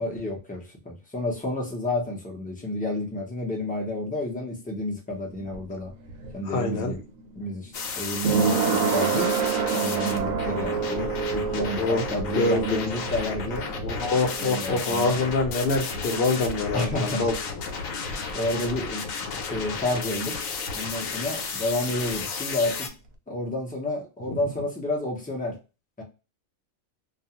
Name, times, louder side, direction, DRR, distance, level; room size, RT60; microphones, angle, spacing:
voice 1, 0.0-5.9 6.3-7.0 7.4-9.3 9.7-13.7 14.4-15.2 16.7-17.2 18.3-19.0 19.3-20.4 20.7-22.9 23.3-25.6 26.0-26.1, left 1 dB, 10° left, -1 dB, 0.4 m, -30 dB
sound 1, 5.1-16.7 16.9-17.0, right 6 dB, 85° right, 1.0 m, -29 dB
voice 2, 6.5-6.9 11.5-12.0 12.3-12.8 13.8-17.3 24.3-24.4, left 3 dB, 55° left, 3 dB, 0.8 m, -25 dB
sound 2, 7.7-22.9, left 4 dB, 85° left, 1.0 m, -33 dB
2.4 x 2.3 x 2.8 m, 0.30 s
omnidirectional pair, 1.4 m